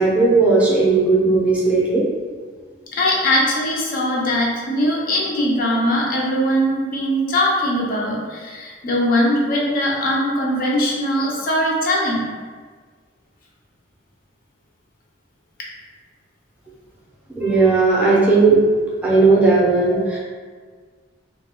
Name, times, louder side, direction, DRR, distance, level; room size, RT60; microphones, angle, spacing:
voice 1, 0.0-2.0 17.3-18.7 19.0-20.2, right 3 dB, 5° right, -7 dB, 0.5 m, -16 dB
voice 2, 2.9-12.3, equal, 50° left, -3 dB, 0.5 m, -20 dB
2.2 x 2.0 x 3.6 m, 1.5 s
head